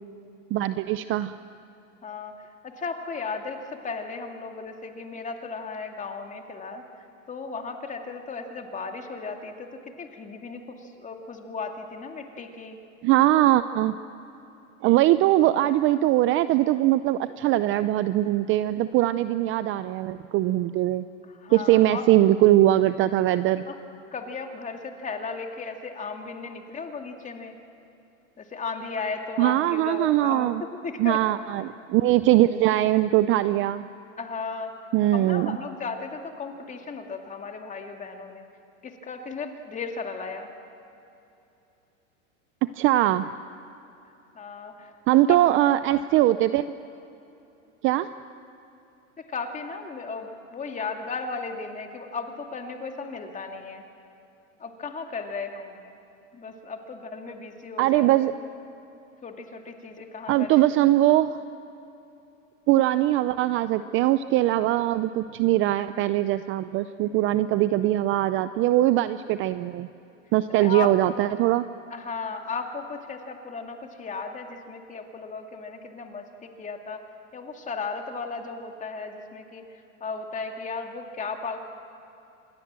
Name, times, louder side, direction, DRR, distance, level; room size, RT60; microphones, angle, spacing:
voice 1, 0.5-1.3 13.0-14.0 14.8-21.0 21.5-23.6 29.4-30.6 31.0-33.8 34.9-35.6 42.6-43.3 45.1-46.7 47.8-48.1 57.8-58.3 60.3-61.4 62.7-69.9 70.3-71.6, right 14 dB, 35° right, 13 dB, 0.5 m, -21 dB
voice 2, 2.0-2.3 2.6-6.8 7.3-9.7 10.0-12.8 21.3-22.1 23.7-23.8 24.1-27.5 28.4-30.5 30.8-31.2 34.2-34.7 35.1-38.4 38.8-40.5 44.3-45.4 49.3-53.8 54.6-55.8 56.3-58.3 59.2-60.6 70.6-70.9 71.9-77.0 77.3-79.7 80.0-81.6, left 4 dB, 20° left, 4 dB, 2.3 m, -35 dB
27.0 x 21.5 x 7.5 m, 2.9 s
supercardioid pair, 130°, 39 cm